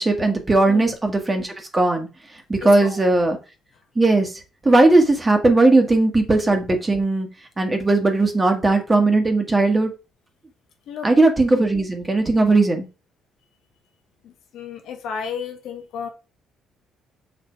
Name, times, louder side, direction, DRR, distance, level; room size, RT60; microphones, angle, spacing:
voice 1, 0.0-2.1 2.5-3.4 4.0-4.3 4.6-7.3 7.6-9.9 11.0-12.9, right 2 dB, 20° right, 1.7 m, -18 dB
voice 2, 2.6-3.0 10.9-11.1 11.5-11.6 14.2-16.1, left 7 dB, 75° left, 1.4 m, -33 dB
6.8 x 3.3 x 4.7 m
cardioid pair, 95°, 0 cm